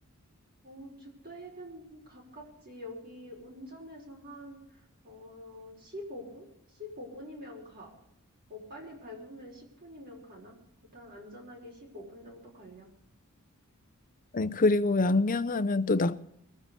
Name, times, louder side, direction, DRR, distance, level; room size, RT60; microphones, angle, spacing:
voice 1, 0.6-7.9 8.5-10.6 10.9-12.9, left 1 dB, 45° right, 5.4 m, -46 dB
voice 2, 14.3-16.2, left 2 dB, 40° left, 0.6 m, -25 dB
21.5 x 7.6 x 6.8 m
head